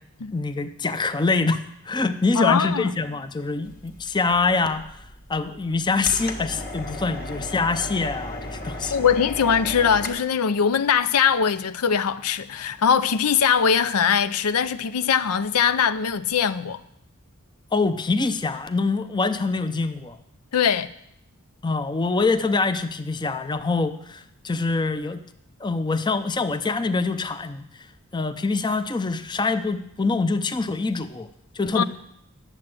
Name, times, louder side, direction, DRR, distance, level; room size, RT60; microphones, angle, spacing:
voice 1, 0.3-4.9 5.3-8.9 17.7-20.2 21.6-25.2 25.6-27.6 28.1-31.3 31.5-31.8, left 3 dB, 20° left, 0.5 m, -25 dB
voice 2, 2.3-2.9 8.9-16.8 20.5-20.9 31.7-31.8, left 7 dB, 85° left, 0.5 m, -21 dB
sound 1, 3.7-10.2, left 1 dB, 40° left, 1.5 m, -35 dB
10.5 x 7.6 x 7.6 m
head